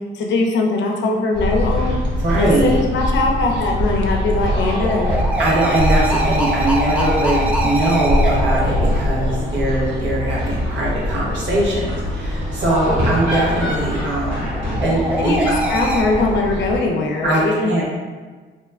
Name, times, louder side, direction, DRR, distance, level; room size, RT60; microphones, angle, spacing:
voice 1, 0.1-2.0 2.4-5.3 15.2-17.8, left 2 dB, 65° left, 1 dB, 0.6 m, -21 dB
sound 1, 1.3-16.8, left 1 dB, 90° right, 1.4 m, -23 dB
voice 2, 2.2-2.8 4.6-4.7 5.4-14.5 14.8-15.5 17.2-17.8, right 1 dB, 65° right, -5 dB, 1.1 m, -21 dB
sound 2, 4.2-10.1 13.6-16.0, right 1 dB, 5° right, 0.5 m, -24 dB
2.8 x 2.2 x 3.5 m, 1.4 s
cardioid pair, 90°, 20 cm